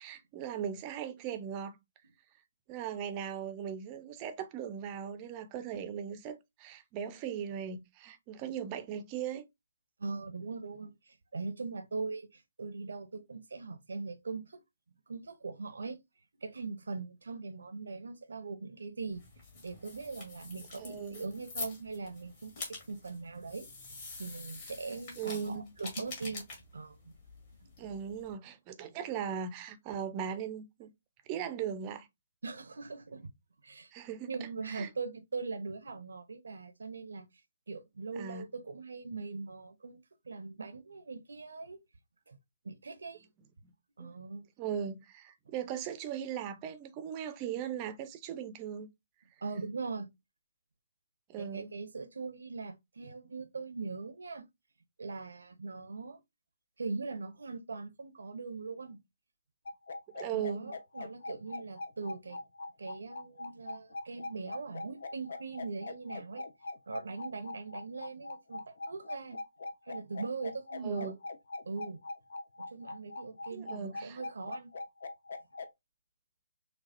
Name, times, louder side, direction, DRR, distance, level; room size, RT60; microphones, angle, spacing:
voice 1, 0.0-1.8 2.7-9.5 20.8-21.2 25.2-25.7 27.8-30.9 31.3-32.1 33.9-34.3 34.7-34.9 38.2-38.4 43.6-43.7 44.0-44.1 44.6-48.9 51.3-51.7 60.1-60.7 70.8-71.1 73.5-74.2, right 8 dB, 25° right, 0.6 m, -38 dB
voice 2, 10.0-14.6 15.1-16.0 16.4-19.2 19.6-23.7 24.2-26.5 26.7-27.1 27.6-27.7 32.4-33.3 33.6-33.9 34.3-37.3 37.7-41.8 42.3-42.4 42.6-43.3 44.0-44.5 49.4-50.1 51.4-54.4 55.0-56.2 56.8-59.0 60.3-62.4 62.8-66.4 66.9-69.4 69.9-71.2 71.6-72.0 72.7-74.7, right 4 dB, 65° right, 0.7 m, -41 dB
sound 1, 19.1-28.3, left 3 dB, 35° left, 2.2 m, -46 dB
sound 2, 59.7-75.7, left 2 dB, 55° left, 0.6 m, -41 dB
6.3 x 2.3 x 2.6 m
figure-of-eight pair, 135°, 0 cm